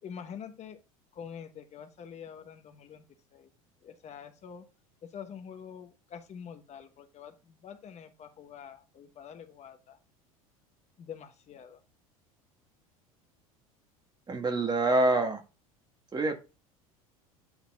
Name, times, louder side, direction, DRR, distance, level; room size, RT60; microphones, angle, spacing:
voice 1, 0.0-0.8 1.1-3.0 3.3-3.5 3.8-4.6 5.0-10.0 11.0-11.8, left 7 dB, 40° left, 8 dB, 1.1 m, -46 dB
voice 2, 14.3-15.4 16.1-16.4, right 2 dB, 25° right, 6 dB, 1.6 m, -26 dB
9.0 x 4.0 x 3.5 m, 0.30 s
hypercardioid pair, 80°, 18 cm